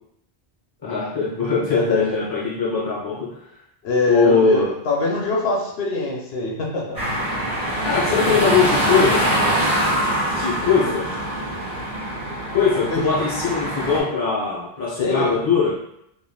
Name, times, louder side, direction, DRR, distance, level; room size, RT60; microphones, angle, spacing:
voice 1, 0.8-3.5 4.0-4.7 7.8-9.3 10.3-11.1 12.5-15.8, left 5 dB, 25° left, -6 dB, 0.7 m, -21 dB
voice 2, 1.7-2.0 3.8-7.0 10.8-10.9 12.9-13.2 15.0-15.4, left 2 dB, 80° left, -2 dB, 0.9 m, -24 dB
sound 1, 7.0-14.0, right 1 dB, 60° right, 1.5 m, -23 dB
3.2 x 2.4 x 2.2 m, 0.77 s
omnidirectional pair, 1.1 m